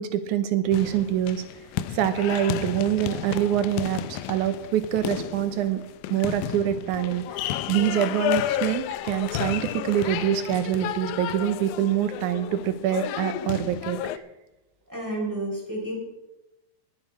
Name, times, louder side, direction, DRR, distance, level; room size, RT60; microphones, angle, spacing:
voice 1, 0.0-1.4 1.9-5.8 6.1-14.2, right 11 dB, 75° right, 11 dB, 1.9 m, -25 dB
sound 1, 0.7-14.2, left 12 dB, 85° left, 1.7 m, -32 dB
voice 2, 14.9-15.9, right 1 dB, 5° right, -2 dB, 4.2 m, -30 dB
20.0 x 8.7 x 4.7 m, 0.95 s
omnidirectional pair, 4.3 m